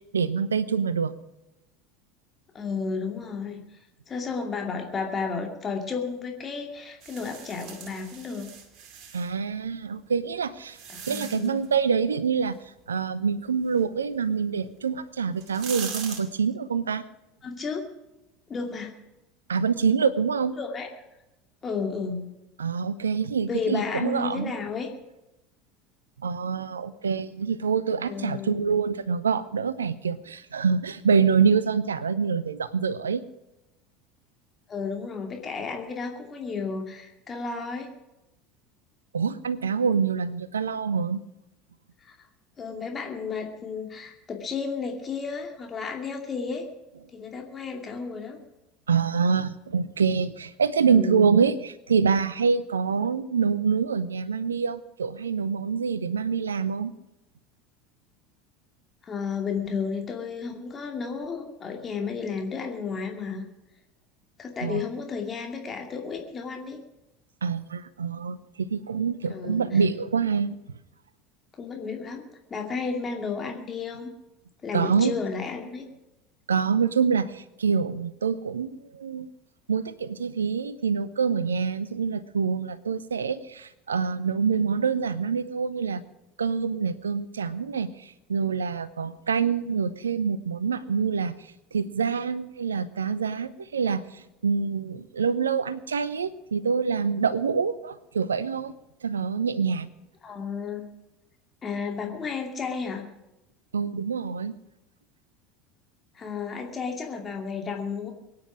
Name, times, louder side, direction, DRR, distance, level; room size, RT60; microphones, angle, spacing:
voice 1, 0.1-1.1 9.1-10.8 11.1-12.6 12.9-17.0 19.5-20.6 22.6-24.5 26.2-33.2 39.1-41.2 48.9-56.9 64.6-64.8 67.4-70.5 74.7-75.1 76.5-79.3 79.7-86.0 86.4-91.3 91.7-98.7 99.0-99.9 103.7-104.5, right 6 dB, 75° right, 17 dB, 0.7 m, -26 dB
voice 2, 2.5-3.6 4.1-8.5 10.9-11.6 17.4-17.8 18.5-18.9 20.6-20.9 21.6-22.2 23.5-24.9 28.0-28.6 34.7-37.9 42.0-42.2 42.6-46.6 47.1-48.4 50.8-51.3 59.0-63.4 64.4-66.8 69.3-69.6 71.6-74.1 74.6-75.8 100.2-100.9 101.6-103.1 106.1-108.1, left 5 dB, 25° left, 3 dB, 2.5 m, -32 dB
sound 1, 7.0-9.3 10.1-11.7 14.7-14.8 15.3-16.2, right 7 dB, 45° right, 2.4 m, -40 dB
23.0 x 9.6 x 5.0 m, 0.95 s
figure-of-eight pair, 75°, 0 cm